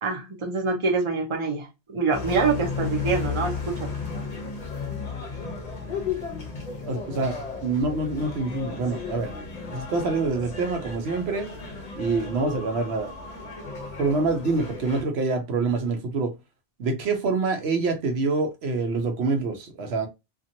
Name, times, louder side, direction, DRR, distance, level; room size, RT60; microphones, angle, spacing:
voice 1, 0.0-3.9, right 4 dB, 35° right, 0.7 m, -25 dB
sound 1, 2.1-15.0, left 5 dB, 45° left, 0.7 m, -34 dB
voice 2, 6.9-9.3 9.7-11.5 12.0-13.1 14.0-16.3 16.8-20.1, right 3 dB, 75° right, 0.9 m, -26 dB
2.8 x 2.4 x 2.6 m
omnidirectional pair, 1.1 m